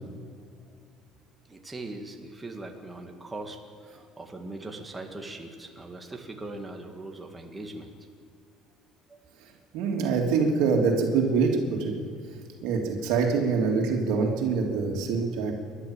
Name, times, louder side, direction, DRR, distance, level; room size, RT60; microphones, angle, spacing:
voice 1, 1.5-7.9 9.1-9.2 9.8-9.9, right 2 dB, 10° right, 3 dB, 2.0 m, -40 dB
voice 2, 9.7-11.9 12.6-15.5, right 5 dB, 75° right, 1 dB, 3.1 m, -25 dB
29.5 x 12.0 x 7.4 m, 2.4 s
cardioid pair, 155°, 0 cm